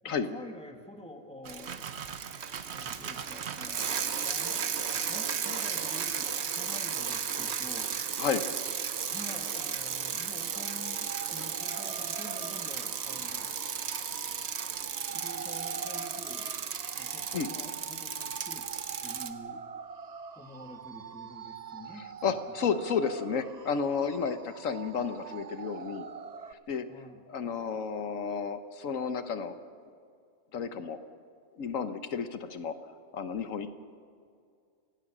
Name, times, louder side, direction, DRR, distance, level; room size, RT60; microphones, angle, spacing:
voice 1, 0.0-1.9 2.7-4.6 4.9-7.9 9.1-13.6 15.1-16.5 17.0-18.7 19.0-19.6 20.3-22.6 26.9-27.2, left 1 dB, 5° left, 4 dB, 1.7 m, -48 dB
Bicycle, 1.4-19.3, right 7 dB, 60° right, 1.1 m, -34 dB
sound 1, 10.4-26.5, right 6 dB, 45° right, 0.6 m, -44 dB
voice 2, 22.2-26.1 26.7-26.9 27.3-29.5 30.5-31.0 31.6-32.7 33.1-33.7, left 6 dB, 80° left, 10 dB, 1.4 m, -32 dB
28.0 x 16.5 x 6.1 m, 2.3 s
omnidirectional pair, 1.3 m